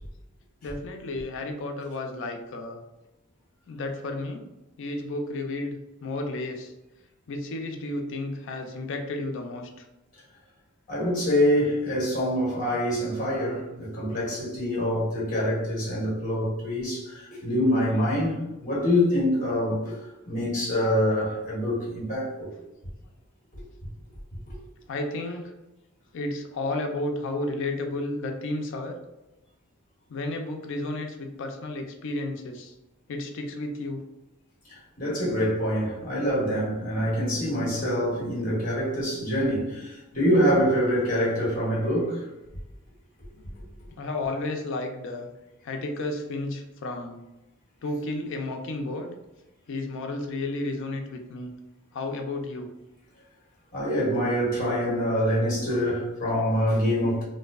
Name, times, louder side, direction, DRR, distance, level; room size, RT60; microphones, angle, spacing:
voice 1, 0.6-2.8 3.7-4.5 4.8-5.8 6.0-6.7 7.3-9.9 11.8-11.9 17.6-18.2 24.9-25.5 26.1-29.0 30.1-32.7 33.1-34.0 43.3-45.3 45.6-47.3 47.8-49.2 49.7-51.5 51.9-52.7 55.7-56.0, left 2 dB, 65° left, 0.4 m, -32 dB
voice 2, 10.9-19.9 20.2-22.5 23.5-23.6 24.4-24.5 34.7-42.2 53.7-57.2, equal, 40° left, 1.1 m, -25 dB
2.5 x 2.1 x 2.3 m
head